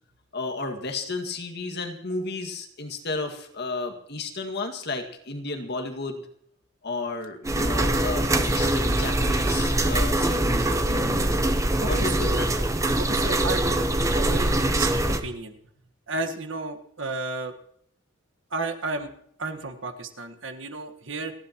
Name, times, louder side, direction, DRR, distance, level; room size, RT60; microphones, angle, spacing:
voice 1, 0.3-6.2 6.8-11.4 11.8-12.7, left 3 dB, 55° left, 5 dB, 2.0 m, -33 dB
sound 1, 7.4-15.2, right 1 dB, 15° right, 1.0 m, -23 dB
voice 2, 11.8-12.4 13.0-13.8 14.1-14.9 15.2-15.5 16.1-17.5 18.5-19.1 19.4-21.3, right 3 dB, 65° right, 7 dB, 1.5 m, -32 dB
29.5 x 11.5 x 3.0 m, 0.69 s
head